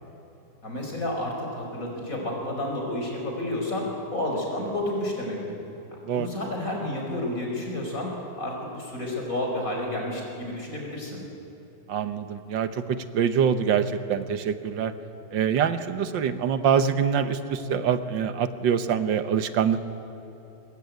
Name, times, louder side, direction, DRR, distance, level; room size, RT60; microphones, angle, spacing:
voice 1, 0.6-5.4 6.1-8.1 8.4-11.2, left 1 dB, 45° left, 0 dB, 5.5 m, -30 dB
voice 2, 11.9-14.9 15.3-19.8, right 7 dB, 90° right, 11 dB, 1.8 m, -25 dB
22.5 x 21.0 x 9.4 m, 2.9 s
omnidirectional pair, 1.9 m